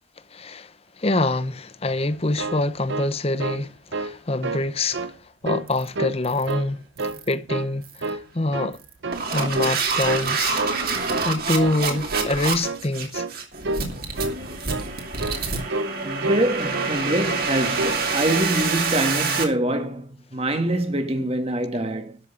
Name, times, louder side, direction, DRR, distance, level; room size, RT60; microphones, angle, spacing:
voice 1, 0.3-6.8 7.3-8.8 9.3-10.7 11.0-13.3, left 2 dB, 30° left, 0.8 m, -25 dB
sound 1, 2.1-3.7 3.9-4.2 4.4-5.1 5.4-6.2 6.5-7.2 7.5-7.7 8.0-8.8 9.0-9.3 9.5-9.8 10.1-10.8 11.1-11.3 11.6-11.8 12.1-12.4 12.6-12.9 13.1-13.4 13.6-13.9 14.1-14.4 14.7-14.9 15.2-15.4 15.7-15.9 16.2-17.0 17.2-17.5 17.7-18.0 18.3-18.5, right 2 dB, 60° right, 0.8 m, -29 dB
sound 2, 5.7-5.9 6.2-6.5 7.0-7.3 7.8-8.1 8.7-19.4, right 4 dB, 45° right, 2.6 m, -27 dB
voice 2, 16.0-22.2, right 1 dB, 30° right, 1.7 m, -25 dB
12.5 x 6.6 x 7.0 m
head